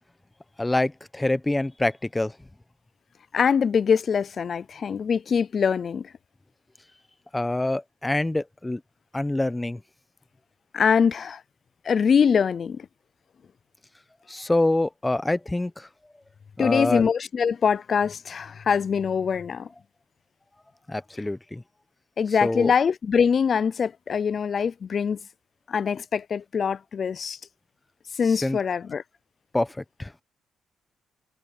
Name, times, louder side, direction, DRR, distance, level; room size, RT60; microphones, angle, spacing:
voice 1, 0.6-2.3 7.3-8.8 9.1-9.8 14.3-15.9 16.6-17.1 20.9-21.6 22.4-22.7 28.3-28.6 29.5-30.1, left 2 dB, 10° left, 1.1 m, -26 dB
voice 2, 3.3-6.1 10.7-11.4 11.9-12.9 16.6-19.7 22.2-25.2 25.7-27.4 28.2-29.0, left 6 dB, 50° left, 0.5 m, -23 dB
cardioid pair, 90°, 0 cm